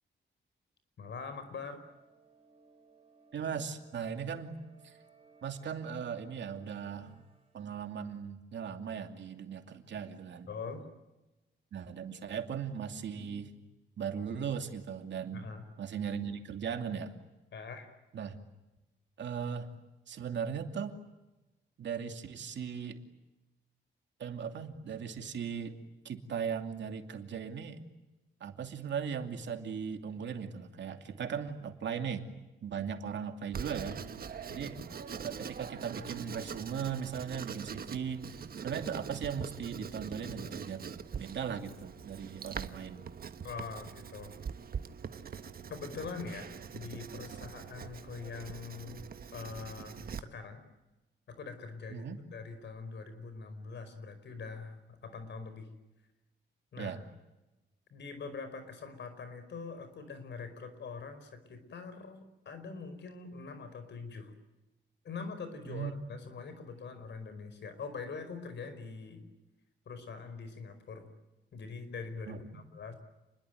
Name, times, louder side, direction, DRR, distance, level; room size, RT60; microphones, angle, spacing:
voice 1, 1.0-1.8 10.5-10.8 15.3-15.6 17.5-17.9 34.5-34.7 43.4-44.4 45.7-49.0 49.3-50.6 51.3-55.7 56.7-56.9 57.9-64.3 65.0-69.2 69.8-71.1 71.5-72.9, left 4 dB, 65° left, 10 dB, 5.0 m, -43 dB
sound 1, 1.8-7.7, right 5 dB, 30° right, 6.0 m, -63 dB
voice 2, 3.3-4.6 4.8-4.9 5.4-7.2 7.5-10.5 11.7-13.5 14.0-15.5 15.8-17.1 18.1-18.4 19.2-19.7 20.1-21.0 21.8-23.0 24.2-25.7 26.0-27.8 28.4-32.3 32.6-34.0 34.5-34.8 35.2-43.1 51.9-52.2 56.8-57.0 65.7-65.9 72.3-72.6, right 7 dB, 70° right, 5 dB, 2.7 m, -38 dB
Writing, 33.5-50.2, right 7 dB, 50° right, 1.3 m, -43 dB
29.5 x 21.5 x 9.3 m, 1.1 s
wide cardioid pair, 145°, 19 cm